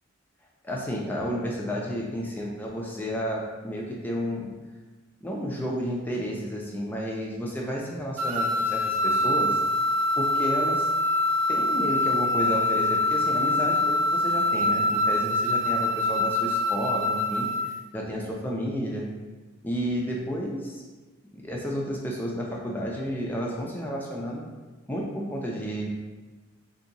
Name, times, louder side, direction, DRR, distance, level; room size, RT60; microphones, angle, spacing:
voice 1, 0.6-4.5 5.2-9.6 10.2-10.9 11.5-17.5 17.9-19.1 19.6-20.8 21.3-24.5 24.9-25.9, equal, 10° left, -3 dB, 0.4 m, -31 dB
sound 1, 8.2-17.8, left 1 dB, 70° right, 0.5 m, -24 dB
2.8 x 2.6 x 3.8 m, 1.3 s
head